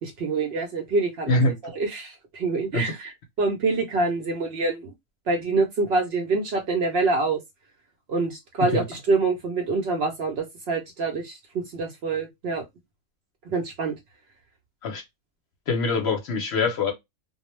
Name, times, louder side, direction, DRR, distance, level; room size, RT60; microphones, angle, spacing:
voice 1, 0.0-3.1 3.4-4.9 5.3-7.4 8.1-12.6 13.5-13.9, right 3 dB, 60° right, 0.7 m, -26 dB
voice 2, 15.7-16.9, left 3 dB, 60° left, 0.8 m, -23 dB
2.2 x 2.0 x 3.0 m
omnidirectional pair, 1.4 m